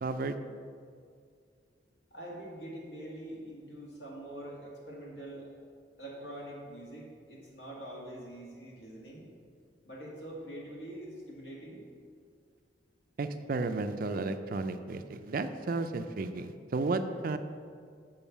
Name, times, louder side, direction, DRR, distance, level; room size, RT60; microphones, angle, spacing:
voice 1, 0.0-0.4 13.2-17.4, right 3 dB, 50° right, 9 dB, 0.4 m, -33 dB
voice 2, 2.1-5.5 6.0-9.3 9.8-11.8, right 1 dB, 70° left, -3 dB, 2.1 m, -44 dB
7.2 x 5.4 x 6.9 m, 2.2 s
head